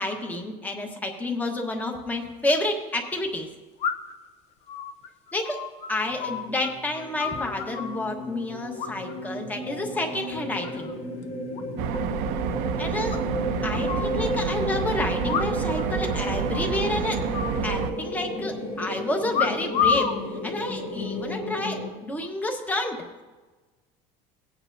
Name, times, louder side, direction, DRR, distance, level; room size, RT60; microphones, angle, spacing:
voice 1, 0.0-3.5 5.3-5.6 5.9-10.9 12.8-13.2 13.6-17.2 17.6-23.2, left 2 dB, 10° left, 3 dB, 1.3 m, -30 dB
sound 1, 2.0-2.1 3.8-4.3 4.7-6.7 7.0-8.0 8.8-9.3 9.6-10.0 10.4-10.9 11.2-11.3 11.5-11.6 11.9-12.0 12.3-12.4 13.1-14.1 15.2-16.2 16.5-16.8 17.3-18.2 19.3-20.2 20.9-21.3, left 7 dB, 45° left, 0.8 m, -30 dB
sound 2, 6.0-21.9, left 1 dB, 70° left, 2.7 m, -33 dB
sound 3, 11.8-17.9, right 8 dB, 70° right, 0.7 m, -29 dB
19.0 x 8.9 x 2.7 m, 1.3 s
cardioid pair, 160°, 15 cm